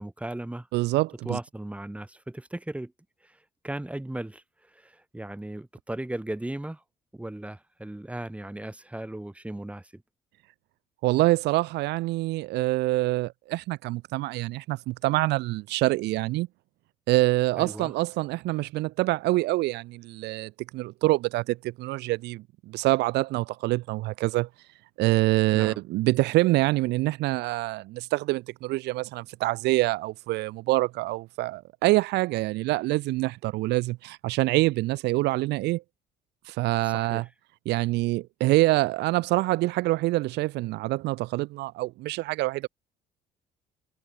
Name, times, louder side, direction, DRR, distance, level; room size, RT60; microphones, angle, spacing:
voice 1, 0.0-0.7 1.2-2.9 3.2-3.4 3.6-6.8 7.1-10.0 17.6-17.9 25.5-25.8 36.8-37.3, right 1 dB, 5° right, 7.1 m, -37 dB
voice 2, 0.7-1.4 11.0-16.5 17.1-24.5 25.0-35.8 36.5-37.2 37.6-42.7, right 19 dB, 85° right, 1.5 m, -26 dB
cardioid pair, 110°, 17 cm